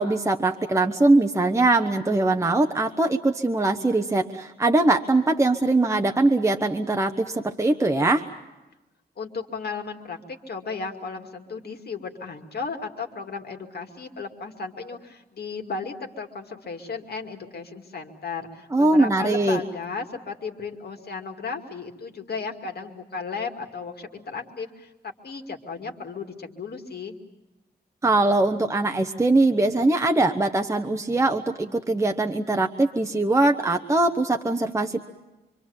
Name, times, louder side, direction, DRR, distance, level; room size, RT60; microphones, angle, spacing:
voice 1, 0.0-8.3 18.7-19.6 28.0-35.0, right 2 dB, 15° right, 4 dB, 0.9 m, -21 dB
voice 2, 9.2-27.2, left 4 dB, 65° left, 4 dB, 2.3 m, -35 dB
26.0 x 25.5 x 7.1 m, 1.0 s
wide cardioid pair, 170°, 17 cm